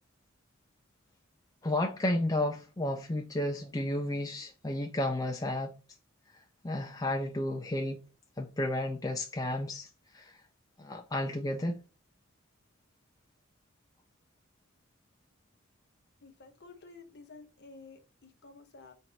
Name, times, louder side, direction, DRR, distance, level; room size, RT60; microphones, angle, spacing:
voice 1, 1.6-5.7 6.6-8.0 8.4-9.9 10.1-10.4 10.8-11.8, left 1 dB, 20° left, 0.4 m, -32 dB
voice 2, 16.2-18.9, left 3 dB, 55° left, 1.0 m, -52 dB
4.5 x 2.6 x 3.9 m
head